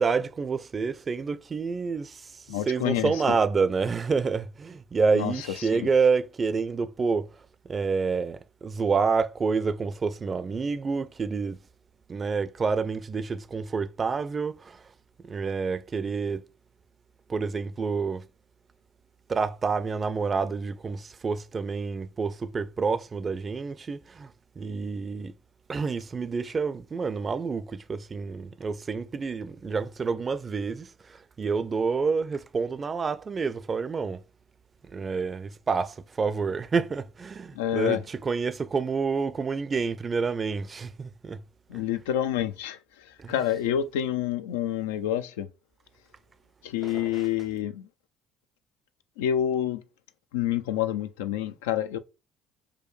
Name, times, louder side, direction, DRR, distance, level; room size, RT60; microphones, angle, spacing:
voice 1, 0.0-7.3 7.7-11.6 12.1-14.8 15.2-16.5 17.3-18.3 19.3-24.3 24.6-25.3 25.7-34.2 34.9-41.4 43.2-43.4 46.8-47.3, right 5 dB, 35° right, 0.4 m, -28 dB
voice 2, 2.5-3.4 5.2-5.3 5.7-5.9 37.6-38.0 41.7-42.8 43.3-45.5 46.6-47.9 49.2-49.8 50.3-52.0, left 11 dB, 85° left, 0.4 m, -28 dB
4.9 x 2.2 x 3.1 m
hypercardioid pair, 65°, 0 cm